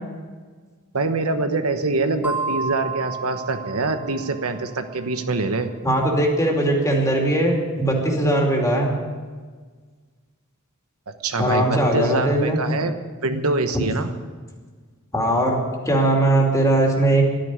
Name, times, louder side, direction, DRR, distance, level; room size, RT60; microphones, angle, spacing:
voice 1, 0.9-5.7 11.2-14.1, right 3 dB, 80° right, 7 dB, 1.1 m, -24 dB
sound 1, 2.2-4.7, right 4 dB, 5° right, 0.9 m, -30 dB
voice 2, 5.8-8.9 11.4-12.6 13.7-13.8 15.1-17.2, right 1 dB, 15° left, 0 dB, 2.8 m, -20 dB
12.5 x 10.5 x 9.5 m, 1.5 s
head